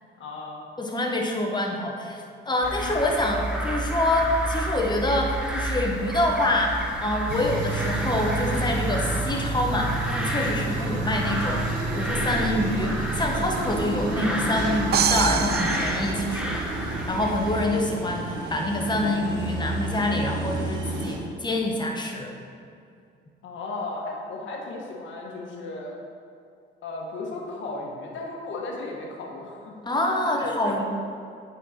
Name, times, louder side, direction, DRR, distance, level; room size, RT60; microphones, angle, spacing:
voice 1, 0.2-0.6 10.5-10.8 23.4-25.9 26.8-30.8, left 2 dB, 70° left, -1 dB, 1.4 m, -35 dB
voice 2, 0.8-11.6 11.9-22.3 29.8-30.8, left 1 dB, 20° left, 1 dB, 1.1 m, -26 dB
sound 1, 2.6-17.7, right 1 dB, 5° right, 1.0 m, -31 dB
sound 2, 7.3-21.2, right 3 dB, 85° right, 1.1 m, -31 dB
sound 3, 14.9-16.9, right 9 dB, 55° right, 0.4 m, -26 dB
9.2 x 4.4 x 4.2 m, 2.4 s
cardioid pair, 90°, 20 cm